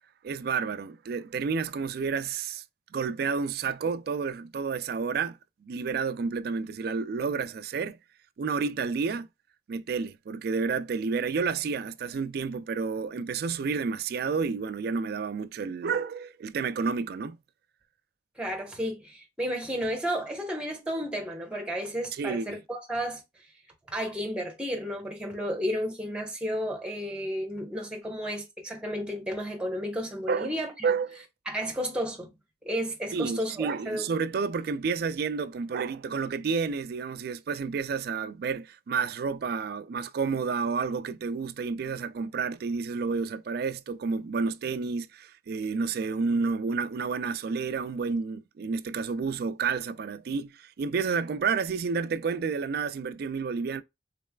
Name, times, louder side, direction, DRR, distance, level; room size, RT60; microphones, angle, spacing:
voice 1, 0.2-2.6 2.9-8.0 8.4-9.3 9.7-17.4 22.2-22.6 30.3-30.5 30.8-31.2 33.1-53.8, right 5 dB, 60° right, 0.3 m, -30 dB
voice 2, 18.4-23.2 23.9-30.7 31.5-32.3 32.6-34.1, equal, 5° right, 1.0 m, -32 dB
4.0 x 3.2 x 2.3 m
head